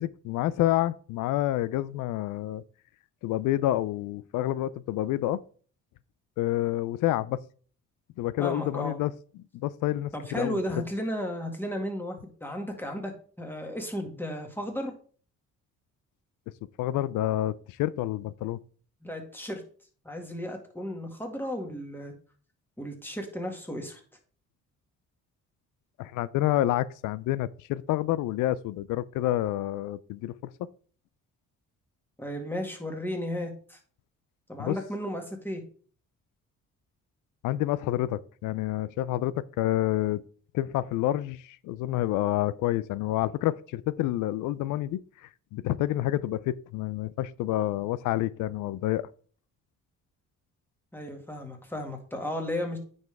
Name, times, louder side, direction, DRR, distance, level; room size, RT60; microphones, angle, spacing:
voice 1, 0.0-2.6 3.2-5.4 6.4-7.4 8.2-9.1 9.5-10.6 16.8-18.6 26.0-30.4 34.6-34.8 37.4-40.2 40.5-49.1, left 14 dB, 85° left, 0.5 m, -28 dB
voice 2, 8.4-9.0 10.1-13.1 13.4-14.9 19.0-19.6 20.0-22.1 22.8-24.0 32.2-33.8 34.5-35.6 50.9-52.8, left 1 dB, 5° left, 2.0 m, -34 dB
9.2 x 5.4 x 3.5 m
cardioid pair, 90°, 30 cm